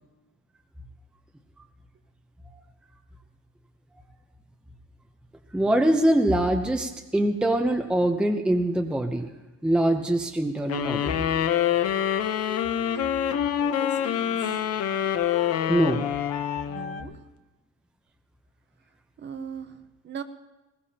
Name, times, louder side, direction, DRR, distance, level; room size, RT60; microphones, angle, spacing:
voice 1, 5.5-9.3 9.6-11.2 15.7-16.0, right 1 dB, 5° right, 4 dB, 0.6 m, -23 dB
sound 1, 10.7-17.1, left 9 dB, 45° left, 0.8 m, -26 dB
sound 2, 11.0-17.0, left 9 dB, 75° left, 1.1 m, -36 dB
voice 2, 13.6-14.8 16.7-17.1 19.2-20.2, right 7 dB, 30° right, 9 dB, 0.8 m, -40 dB
21.0 x 19.0 x 2.9 m, 1.1 s
cardioid pair, 180°, 34 cm